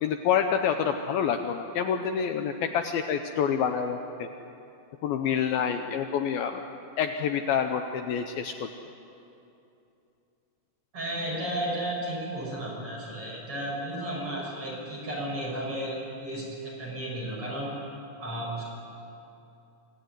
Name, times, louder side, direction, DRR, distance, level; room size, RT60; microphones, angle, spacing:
voice 1, 0.0-4.3 5.0-6.6 7.0-8.7, left 7 dB, 90° left, 6 dB, 2.1 m, -27 dB
voice 2, 10.9-17.7 18.2-18.6, right 1 dB, 30° right, -4 dB, 7.4 m, -33 dB
26.5 x 17.5 x 9.6 m, 2.8 s
omnidirectional pair, 5.3 m